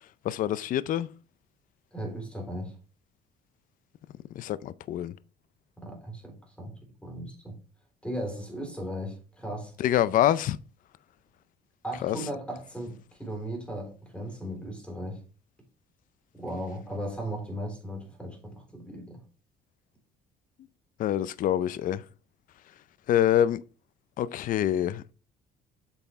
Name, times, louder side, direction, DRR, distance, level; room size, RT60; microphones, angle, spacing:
voice 1, 0.2-1.1 4.4-5.1 9.8-10.6 12.0-12.2 21.0-22.0 23.1-23.6 24.2-25.1, left 11 dB, 55° left, 0.4 m, -25 dB
voice 2, 1.9-2.7 5.8-6.7 7.0-7.6 8.0-9.7 11.8-15.2 16.3-19.2, equal, 5° left, 3.8 m, -37 dB
8.3 x 5.7 x 3.4 m
cardioid pair, 110°, 17 cm